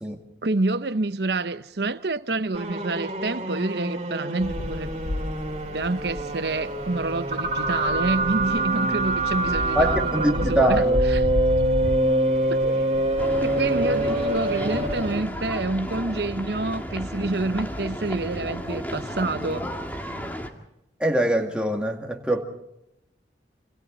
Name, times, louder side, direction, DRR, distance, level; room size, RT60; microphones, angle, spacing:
voice 1, 0.4-4.9 5.7-11.2 12.5-12.8 13.4-19.7, right 2 dB, 65° right, 0.9 m, -28 dB
sound 1, 2.5-15.3, right 2 dB, 35° right, 3.5 m, -25 dB
sound 2, 4.4-15.2, left 2 dB, 45° left, 0.7 m, -33 dB
voice 2, 9.7-11.0 21.0-22.4, right 1 dB, 5° right, 2.2 m, -23 dB
sound 3, 13.2-20.5, equal, 10° left, 2.0 m, -33 dB
28.0 x 28.0 x 4.0 m
head